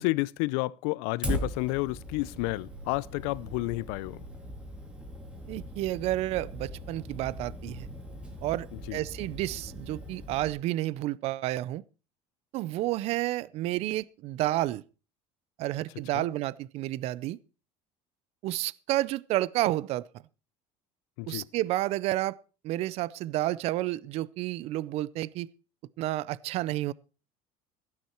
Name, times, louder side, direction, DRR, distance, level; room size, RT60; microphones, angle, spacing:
voice 1, 0.0-4.2 8.7-9.0 16.1-16.3 21.2-21.5, left 22 dB, 85° left, 0.6 m, -31 dB
Fire, 1.2-10.5, equal, 5° right, 2.3 m, -40 dB
voice 2, 5.5-7.9 8.4-11.8 12.5-14.8 15.6-17.4 18.4-20.0 21.3-22.4 22.6-25.5 26.0-26.9, right 16 dB, 45° right, 0.5 m, -30 dB
16.0 x 9.7 x 4.5 m
cardioid pair, 175°, 15 cm